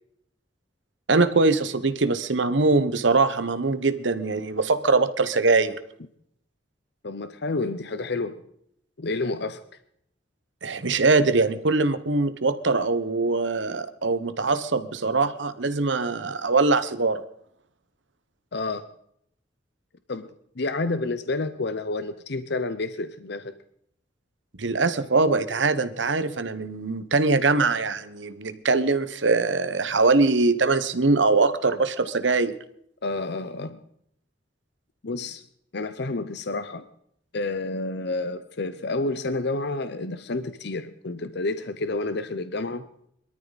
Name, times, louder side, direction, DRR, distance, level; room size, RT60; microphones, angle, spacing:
voice 1, 1.1-5.8 10.6-17.2 24.6-32.5, right 3 dB, 85° right, 12 dB, 1.2 m, -22 dB
voice 2, 7.0-8.4 9.0-9.6 18.5-18.8 20.1-20.3 20.6-23.5 33.0-33.8 35.0-35.4 35.7-36.9 37.3-42.9, left 3 dB, 65° left, 11 dB, 0.8 m, -29 dB
22.5 x 13.5 x 4.1 m, 0.70 s
head